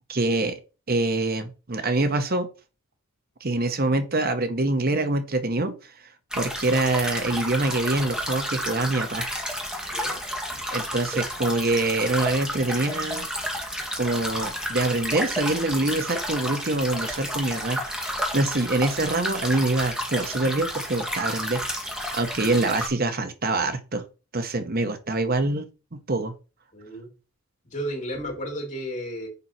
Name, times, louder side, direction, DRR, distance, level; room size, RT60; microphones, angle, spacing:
voice 1, 0.1-0.6 0.9-2.5 3.4-5.9 6.3-9.3 10.7-13.3 14.0-21.9 22.1-24.0 24.3-26.3, right 2 dB, 45° right, 0.9 m, -25 dB
sound 1, 6.3-22.9, equal, 5° right, 1.9 m, -31 dB
voice 2, 9.9-10.2 26.7-27.1 27.6-29.3, equal, 35° left, 3.2 m, -33 dB
7.0 x 5.3 x 5.9 m
head